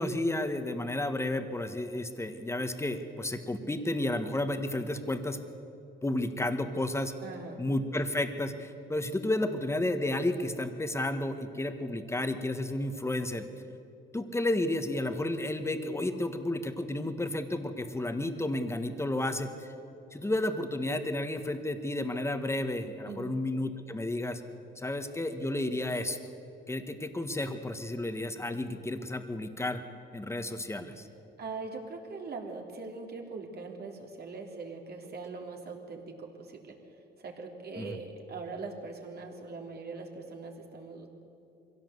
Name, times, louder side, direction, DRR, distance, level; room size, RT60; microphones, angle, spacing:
voice 1, 0.0-5.4 6.0-7.1 7.6-13.5 14.1-19.7 20.1-24.4 24.8-26.2 26.7-29.8 30.1-31.1 37.8-37.9, left 1 dB, 15° left, 8 dB, 1.6 m, -32 dB
voice 2, 7.2-7.6 23.1-23.4 31.4-36.8 37.2-41.1, right 4 dB, 55° right, 2 dB, 3.2 m, -41 dB
22.5 x 16.5 x 7.9 m, 2.8 s
cardioid pair, 90°, 20 cm